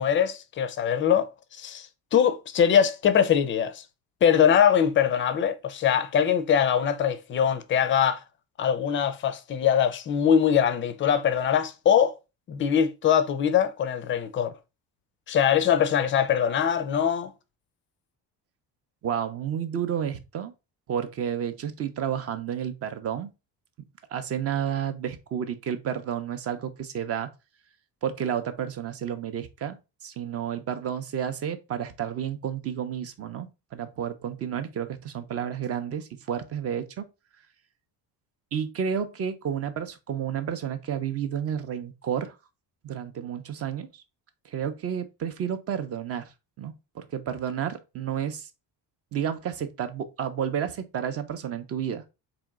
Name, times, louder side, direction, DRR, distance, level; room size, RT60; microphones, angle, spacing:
voice 1, 0.0-3.8 4.2-8.2 8.6-12.2 12.5-14.5 15.3-17.3, left 8 dB, 30° left, 0.4 m, -22 dB
voice 2, 19.0-20.5 20.9-23.3 24.1-27.3 28.0-29.8 30.0-37.1 38.5-42.3 42.8-43.9 44.5-46.3 46.6-48.5 49.1-52.0, right 8 dB, 35° right, 0.5 m, -31 dB
4.2 x 2.9 x 3.5 m
cardioid pair, 175°, 40 cm